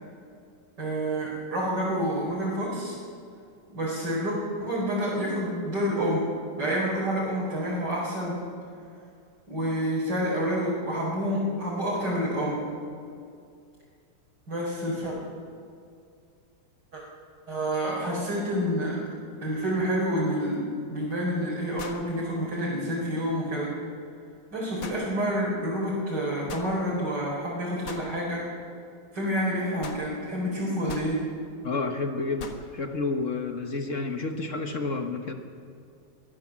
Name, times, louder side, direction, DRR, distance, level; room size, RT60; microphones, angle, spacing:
voice 1, 0.8-3.0 3.7-6.3 6.5-8.4 9.5-12.7 14.5-15.2 16.9-17.0 17.5-19.1 19.4-23.8 24.5-28.5 29.1-31.2, equal, 55° right, -7 dB, 5.3 m, -28 dB
sound 1, 20.5-20.6 21.8-22.1 24.8-25.0 26.5-26.7 27.9-28.1 29.8-30.1 30.9-31.1 32.4-32.7, left 5 dB, 65° left, 2.2 m, -40 dB
voice 2, 31.6-35.3, left 3 dB, 40° left, 5 dB, 1.4 m, -30 dB
23.5 x 16.0 x 7.4 m, 2.4 s
omnidirectional pair, 2.3 m